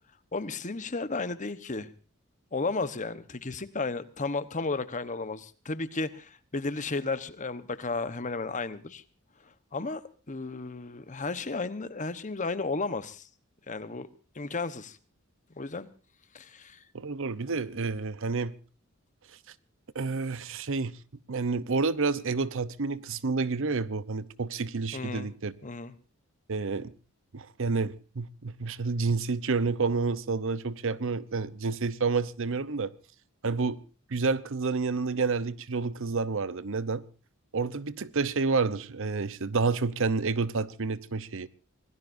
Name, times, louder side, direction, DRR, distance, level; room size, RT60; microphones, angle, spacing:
voice 1, 0.3-1.9 2.5-9.0 9.7-10.0 10.3-13.2 13.7-14.1 14.3-15.0 15.6-15.9 16.3-16.8 24.9-25.3 25.6-25.9, left 3 dB, 35° left, 1.0 m, -33 dB
voice 2, 16.9-18.5 19.9-21.0 21.3-25.5 26.5-26.9 27.3-32.9 33.4-33.8 34.1-37.0 37.5-41.5, right 4 dB, 60° right, 0.8 m, -29 dB
26.0 x 18.0 x 2.6 m
head